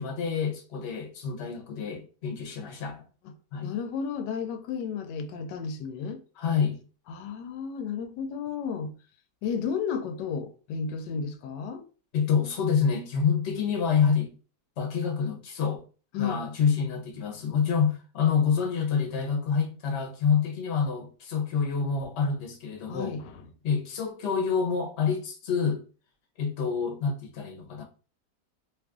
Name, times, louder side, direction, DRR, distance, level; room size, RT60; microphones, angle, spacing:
voice 1, 0.0-3.0 3.5-3.7 6.4-6.8 12.1-14.3 14.8-15.8 16.2-23.1 23.6-25.8 26.4-27.8, left 6 dB, 50° left, 1.0 m, -27 dB
voice 2, 3.6-6.2 7.1-8.9 9.4-11.8 16.1-16.4 22.9-23.5, left 6 dB, 85° left, 1.2 m, -33 dB
2.9 x 2.5 x 3.5 m
omnidirectional pair, 1.8 m